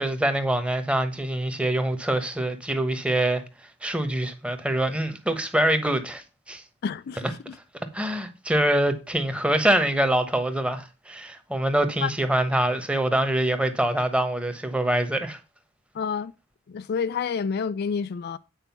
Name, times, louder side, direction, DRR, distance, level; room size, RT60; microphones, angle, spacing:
voice 1, 0.0-3.4 3.8-6.6 7.9-15.4, right 1 dB, 5° right, 1.1 m, -24 dB
voice 2, 6.8-7.6 12.0-12.1 15.9-16.3 16.7-18.4, left 6 dB, 50° left, 0.4 m, -29 dB
9.1 x 4.9 x 5.9 m
head